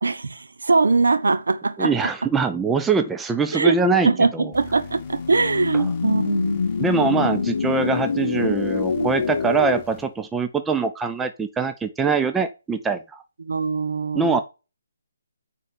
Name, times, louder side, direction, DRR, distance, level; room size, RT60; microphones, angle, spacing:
voice 1, 0.0-2.1 3.5-3.8 4.0-6.7 8.4-8.5 8.9-9.1 9.4-9.5 13.4-14.4, right 3 dB, 75° right, 1.3 m, -22 dB
voice 2, 1.8-4.5 5.7-5.8 6.8-13.2 14.1-14.4, right 4 dB, 10° right, 0.7 m, -23 dB
sound 1, 4.3-9.8, left 5 dB, 65° left, 0.6 m, -26 dB
sound 2, 4.5-10.3, left 4 dB, 15° left, 3.0 m, -46 dB
9.3 x 4.4 x 6.8 m
figure-of-eight pair, 150°, 0 cm